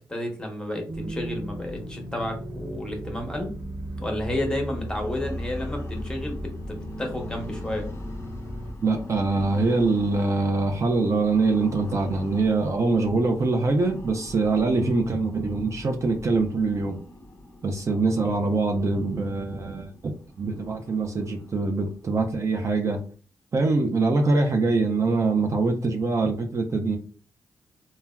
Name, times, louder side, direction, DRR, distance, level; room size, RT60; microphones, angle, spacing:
voice 1, 0.1-3.5 4.0-7.9, left 1 dB, 10° left, 1 dB, 0.9 m, -31 dB
sound 1, 0.9-8.7, equal, 70° right, 0.9 m, -35 dB
sound 2, 4.5-23.1, left 1 dB, 40° left, 0.5 m, -44 dB
voice 2, 8.8-17.0 17.6-23.0 23.5-27.0, right 3 dB, 45° right, 3 dB, 0.4 m, -24 dB
3.4 x 2.1 x 2.2 m, 0.39 s
cardioid pair, 80°, 7 cm